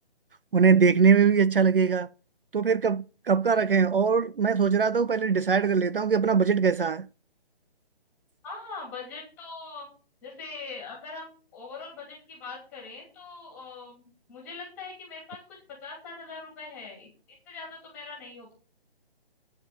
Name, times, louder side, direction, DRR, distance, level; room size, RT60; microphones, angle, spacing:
voice 1, 0.5-2.1 2.5-7.1, right 6 dB, 60° right, 0.6 m, -22 dB
voice 2, 8.4-9.9 10.2-17.1 17.4-18.5, left 4 dB, 5° left, 2.8 m, -42 dB
9.4 x 6.6 x 8.6 m
hypercardioid pair, 180°, 31 cm